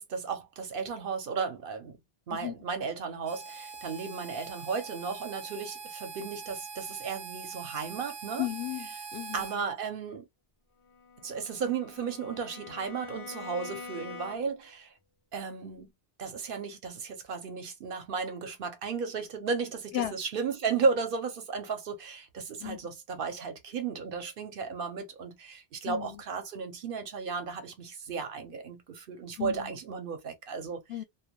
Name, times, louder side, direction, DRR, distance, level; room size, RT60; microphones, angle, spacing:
voice 1, 0.0-2.0 2.3-8.5 9.3-10.3 11.2-14.9 15.3-15.9 16.2-30.8, right 5 dB, 65° right, 0.8 m, -34 dB
Harmonica, 3.2-9.6, right 5 dB, 50° right, 0.4 m, -43 dB
voice 2, 8.4-9.5 19.9-20.1 22.6-22.8 25.8-26.2 29.4-29.7 30.9-31.0, left 13 dB, 80° left, 0.8 m, -34 dB
Bowed string instrument, 10.9-14.7, left 4 dB, 45° left, 0.5 m, -45 dB
2.2 x 2.2 x 3.0 m
omnidirectional pair, 1.0 m